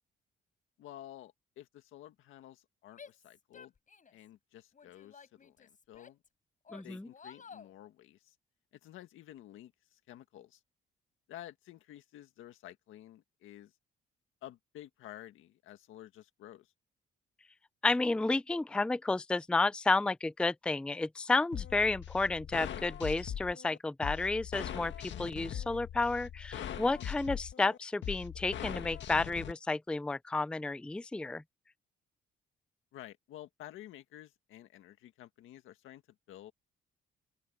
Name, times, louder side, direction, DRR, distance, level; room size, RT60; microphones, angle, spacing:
voice 1, 0.8-3.7 4.1-6.2 6.8-8.4 8.8-10.6 11.3-13.7 14.4-16.7 26.9-27.1 32.9-36.0 36.3-36.5, left 13 dB, 85° left, 1.8 m, -51 dB
Female speech woman speaking / Yell, 2.9-4.3 4.7-6.3 6.6-7.7, left 6 dB, 40° left, 7.2 m, -53 dB
voice 2, 6.7-7.1 17.8-24.9 25.2-31.4, left 3 dB, 5° left, 0.4 m, -31 dB
sound 1, 21.5-29.5, left 10 dB, 65° left, 1.8 m, -41 dB
open air
cardioid pair, 90°, 20 cm